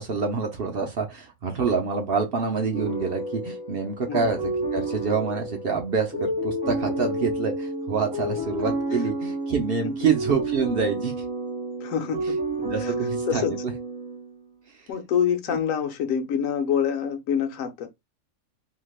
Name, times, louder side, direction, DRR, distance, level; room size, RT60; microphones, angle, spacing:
voice 1, 0.0-11.2 12.6-13.7 14.7-14.9 15.5-15.6, right 5 dB, 55° right, 0.7 m, -27 dB
sound 1, 2.7-14.4, right 1 dB, 5° right, 1.7 m, -30 dB
voice 2, 11.8-12.4 12.8-12.9 13.3-13.5 14.9-17.9, left 8 dB, 70° left, 1.0 m, -26 dB
3.2 x 2.8 x 2.3 m
omnidirectional pair, 1.5 m